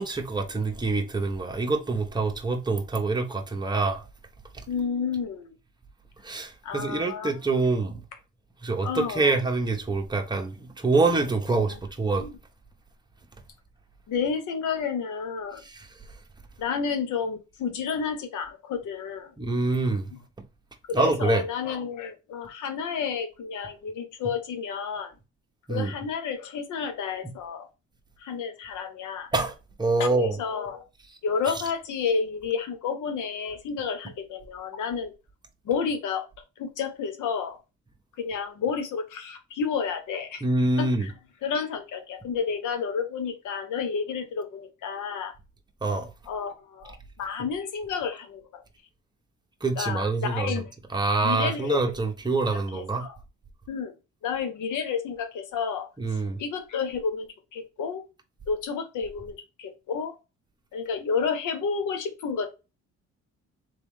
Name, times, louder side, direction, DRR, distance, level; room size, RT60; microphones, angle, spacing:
voice 1, 0.0-4.0 4.5-4.6 6.2-8.0 8.6-12.3 15.6-15.9 19.4-20.1 20.9-21.4 25.7-25.9 29.3-30.4 40.4-41.1 45.8-46.1 49.6-50.6 50.9-53.1 56.0-56.4, right 3 dB, 15° right, 1.1 m, -26 dB
voice 2, 4.7-5.5 6.6-7.3 8.8-9.4 11.7-11.8 12.1-12.3 14.1-15.6 16.6-19.3 20.9-25.1 25.7-27.7 28.2-29.3 30.0-30.8 31.2-35.1 35.6-36.3 36.6-37.6 38.2-40.4 40.8-41.1 41.4-45.3 46.3-48.6 49.8-50.7 51.2-51.9 52.5-53.2 53.7-53.9 54.2-58.0 58.5-60.1 60.7-62.5, left 6 dB, 80° left, 1.2 m, -31 dB
3.7 x 3.4 x 3.6 m
cardioid pair, 90°, 30 cm